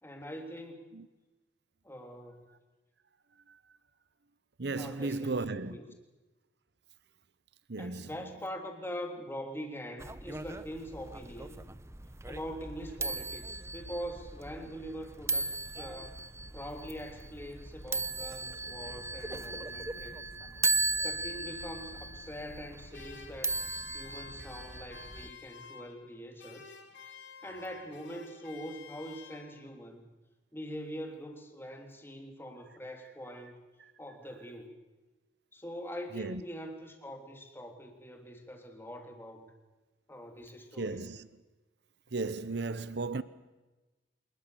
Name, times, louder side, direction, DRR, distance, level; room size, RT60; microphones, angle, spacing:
voice 1, 0.0-0.9 1.8-2.4 4.8-5.8 7.8-11.6 12.3-16.2 16.5-20.3 21.0-23.6 23.9-26.7 27.4-30.1 30.5-33.6 34.0-34.8 35.5-39.5 40.1-41.1, equal, 15° left, 3.3 m, -43 dB
voice 2, 4.6-5.8 7.7-8.1 36.1-36.4 40.8-41.3 42.1-43.2, right 3 dB, 65° right, 0.9 m, -35 dB
sound 1, 10.0-25.3, right 3 dB, 15° right, 0.9 m, -37 dB
sound 2, 22.9-26.1 26.4-29.8, left 5 dB, 85° left, 3.3 m, -51 dB
26.5 x 20.5 x 7.0 m
head